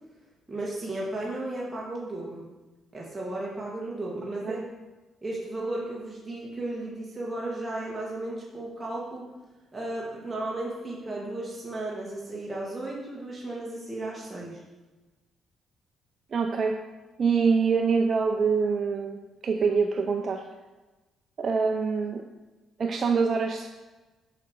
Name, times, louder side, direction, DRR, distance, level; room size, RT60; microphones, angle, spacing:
voice 1, 0.5-2.4 2.9-4.6 5.2-9.2 9.7-14.6, right 2 dB, 15° right, -5 dB, 1.6 m, -34 dB
voice 2, 16.3-16.8 17.2-20.4 21.4-22.2 22.8-23.7, right 5 dB, 45° right, 3 dB, 0.5 m, -25 dB
5.8 x 5.8 x 4.6 m, 1.2 s
cardioid pair, 90°, 0 cm